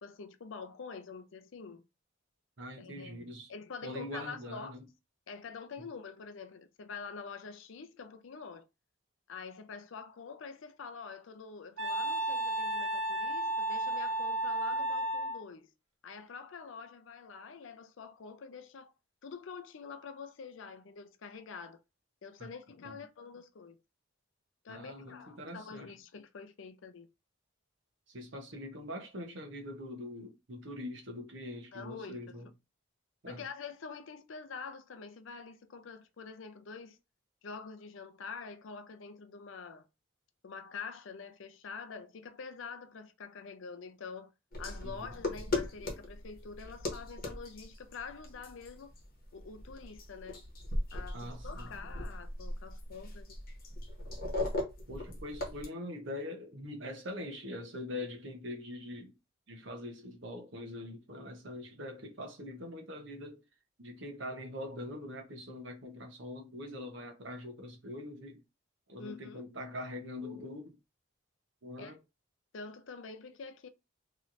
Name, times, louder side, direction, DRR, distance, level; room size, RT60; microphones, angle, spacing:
voice 1, 0.0-1.8 2.8-4.8 5.3-8.7 9.3-15.7 16.0-18.9 19.2-21.8 22.2-23.8 24.6-27.1 31.7-32.4 33.3-37.0 37.4-39.8 40.4-44.3 44.6-48.9 49.3-50.4 50.9-53.4 69.0-69.4 71.8-72.0 72.5-73.7, left 5 dB, 70° left, 0.5 m, -46 dB
voice 2, 2.6-3.5 3.8-4.9 5.8-5.9 22.4-22.5 22.8-23.0 24.7-25.9 28.1-32.5 33.2-33.4 44.8-45.1 51.1-51.7 54.9-59.1 59.5-63.4 63.8-68.4 68.9-70.8 71.6-72.0, left 1 dB, 65° right, 0.9 m, -43 dB
Wind instrument woodwind instrument, 11.8-15.4, right 1 dB, 90° right, 0.8 m, -33 dB
sound 1, 44.5-55.7, left 2 dB, 45° left, 1.0 m, -39 dB
3.1 x 2.8 x 2.5 m
head